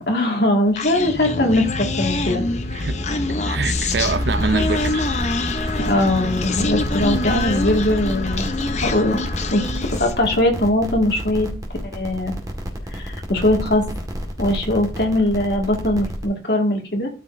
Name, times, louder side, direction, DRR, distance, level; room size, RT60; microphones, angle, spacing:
voice 1, 0.1-2.4 5.8-9.2 9.5-9.6 10.0-11.5 11.8-12.3 12.9-13.8 14.4-17.1, left 1 dB, 65° left, 2.1 m, -20 dB
Human voice, 0.8-10.2, left 2 dB, 40° left, 0.8 m, -24 dB
voice 2, 3.3-5.1, right 4 dB, 70° right, 0.6 m, -25 dB
sound 1, 3.7-16.2, equal, 20° right, 1.8 m, -30 dB
13.0 x 5.2 x 2.7 m
head